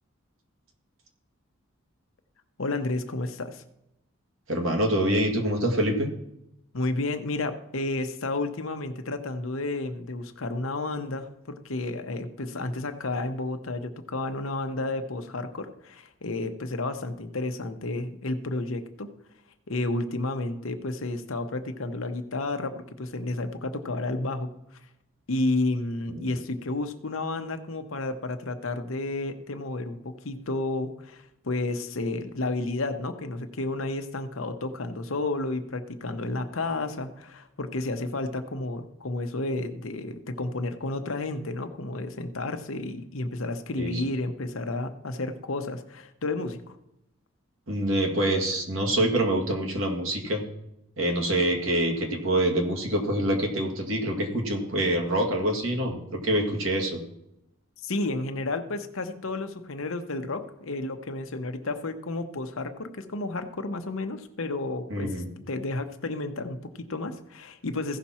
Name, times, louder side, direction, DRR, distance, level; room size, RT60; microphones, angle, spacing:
voice 1, 2.6-3.6 6.7-19.1 19.7-24.5 25.3-46.8 57.8-68.0, left 2 dB, 70° left, 7 dB, 0.9 m, -31 dB
voice 2, 4.5-6.1 26.1-26.3 43.8-44.0 47.7-50.4 51.0-57.0 64.9-65.3, right 1 dB, 65° right, 1 dB, 2.0 m, -26 dB
15.5 x 5.9 x 4.3 m, 0.84 s
head